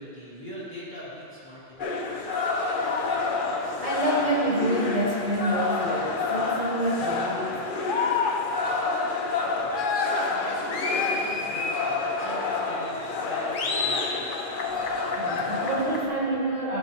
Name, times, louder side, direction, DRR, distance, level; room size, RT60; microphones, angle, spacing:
voice 1, 0.0-2.0 10.1-14.4, equal, 10° left, -10 dB, 2.2 m, -41 dB
sound 1, 1.8-16.1, left 4 dB, 60° left, 0.9 m, -28 dB
voice 2, 3.5-7.7 15.2-16.8, right 1 dB, 35° right, -7 dB, 2.0 m, -28 dB
13.5 x 5.5 x 3.5 m, 2.5 s
omnidirectional pair, 1.1 m